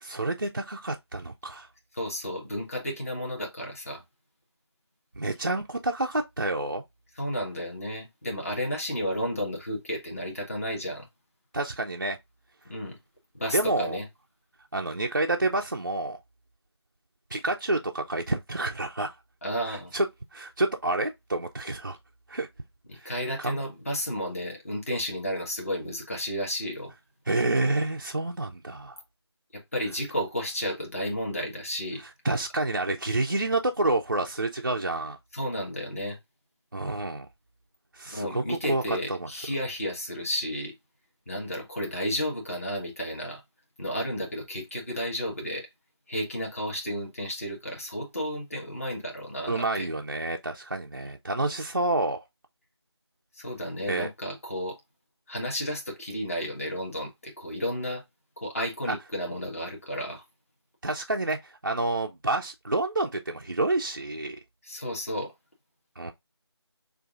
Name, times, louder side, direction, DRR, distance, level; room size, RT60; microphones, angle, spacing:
voice 1, 0.0-1.7 5.2-6.8 11.5-12.2 13.5-14.0 14.7-16.2 17.3-19.1 19.7-20.1 20.3-22.0 22.3-22.5 23.0-23.1 23.4-23.6 27.3-29.0 32.2-35.2 36.7-37.3 37.9-39.3 49.5-52.2 53.9-54.1 60.8-64.4 66.0-66.1, right 2 dB, 45° right, 0.5 m, -28 dB
voice 2, 1.9-4.0 7.2-11.1 12.7-13.0 13.3-14.0 19.4-19.9 22.9-26.9 29.7-32.0 35.3-36.2 38.1-40.7 41.3-43.4 43.8-45.7 46.1-49.9 53.3-54.8 55.3-58.0 58.4-60.2 64.6-65.3, equal, 30° left, 1.3 m, -32 dB
6.4 x 2.5 x 2.4 m
figure-of-eight pair, 165°, 14 cm